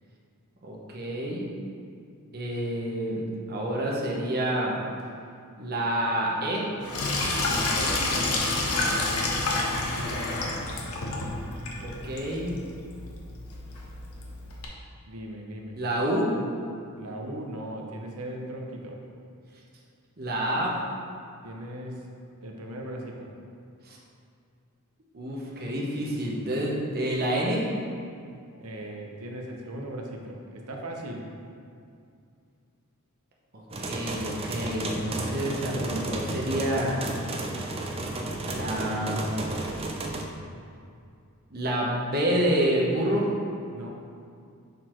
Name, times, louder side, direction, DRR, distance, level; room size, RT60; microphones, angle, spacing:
voice 1, 0.6-1.5 2.3-3.2 3.5-4.7 5.6-6.6 11.8-12.5 15.8-16.3 20.2-20.7 23.9-24.0 25.1-27.7 33.8-37.0 38.4-39.6 41.5-43.3, right 1 dB, 45° right, -3 dB, 1.0 m, -28 dB
Sink (filling or washing), 6.8-14.7, left 2 dB, 75° left, 0.9 m, -29 dB
voice 2, 7.5-8.5 8.9-9.5 9.9-10.6 15.0-15.8 17.0-19.0 21.4-22.1 22.4-23.3 28.6-31.3 43.7-43.9, right 1 dB, 75° right, 0 dB, 0.9 m, -38 dB
sound 1, 33.7-40.2, right 2 dB, 25° right, 0.5 m, -33 dB
6.7 x 4.1 x 4.5 m, 2.4 s
head